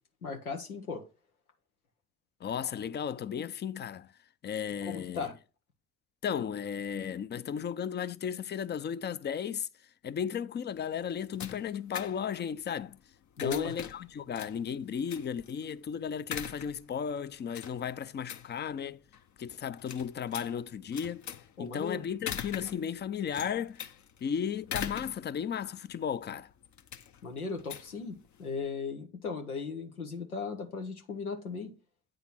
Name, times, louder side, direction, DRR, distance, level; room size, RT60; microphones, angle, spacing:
voice 1, 0.2-1.0 4.8-5.3 13.4-13.8 21.6-22.0 27.2-31.7, left 5 dB, 85° left, 1.2 m, -37 dB
voice 2, 2.4-4.1 4.4-5.3 6.2-9.7 10.0-13.0 13.4-19.0 19.4-21.2 21.6-23.9 24.2-26.5, left 8 dB, 25° left, 0.6 m, -35 dB
sound 1, 10.7-28.7, left 9 dB, 40° left, 0.9 m, -44 dB
8.7 x 3.9 x 6.0 m
figure-of-eight pair, 55°, 43 cm